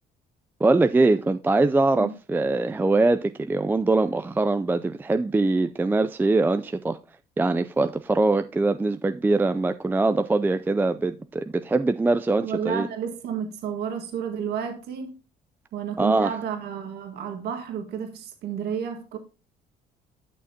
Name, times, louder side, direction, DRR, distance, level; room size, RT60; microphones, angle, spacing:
voice 1, 0.6-7.0 7.4-12.9 16.0-16.4, right 2 dB, 10° right, 0.4 m, -22 dB
voice 2, 12.4-15.1 15.7-19.2, right 7 dB, 75° right, 1.7 m, -31 dB
11.0 x 6.4 x 2.8 m
cardioid pair, 110°, 17 cm